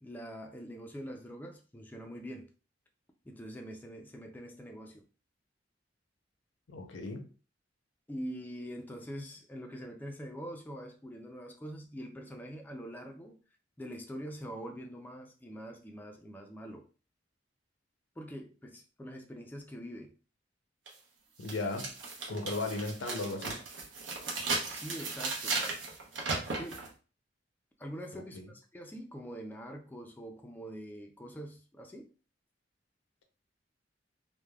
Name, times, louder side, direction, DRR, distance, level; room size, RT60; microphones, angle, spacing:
voice 1, 0.0-2.5 3.3-5.0 8.1-13.4 13.8-16.9 18.2-20.1 24.7-25.6 26.6-26.8 27.8-32.1, equal, 10° left, 0.3 m, -44 dB
voice 2, 6.7-7.3 21.4-21.9 22.3-23.6 28.1-28.5, left 2 dB, 90° left, 0.6 m, -36 dB
sound 1, 20.9-21.0 21.4-26.9, right 3 dB, 80° right, 0.7 m, -36 dB
3.2 x 2.1 x 2.2 m
head